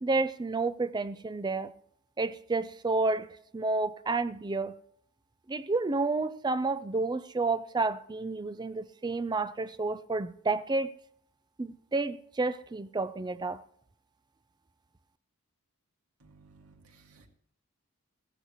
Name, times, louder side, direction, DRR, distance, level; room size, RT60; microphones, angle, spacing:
voice 1, 0.0-1.7 2.2-4.7 5.5-10.9 11.6-13.6, right 3 dB, 20° right, 0.4 m, -30 dB
voice 2, 16.2-17.3, right 4 dB, 75° right, 2.0 m, -58 dB
16.0 x 14.5 x 3.0 m
head